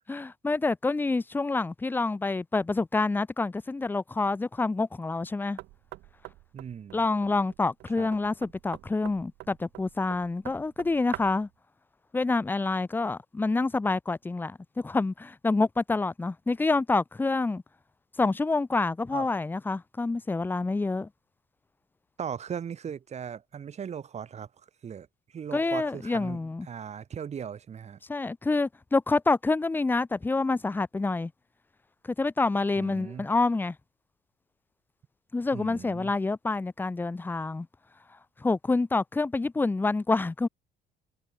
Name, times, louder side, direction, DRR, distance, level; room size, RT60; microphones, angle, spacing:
voice 1, 0.1-5.6 6.9-11.5 12.1-17.6 18.2-21.1 25.5-26.7 28.1-31.3 32.2-33.7 35.3-37.7 38.4-40.5, left 3 dB, 10° left, 0.5 m, -27 dB
Knock, 5.6-11.5, right 19 dB, 80° right, 0.7 m, -45 dB
voice 2, 6.5-7.0 8.0-8.1 19.1-19.3 22.2-24.5 24.8-25.1 25.3-28.0 32.8-33.3 35.5-36.1, right 7 dB, 40° right, 2.5 m, -38 dB
cardioid pair, 110°, 17 cm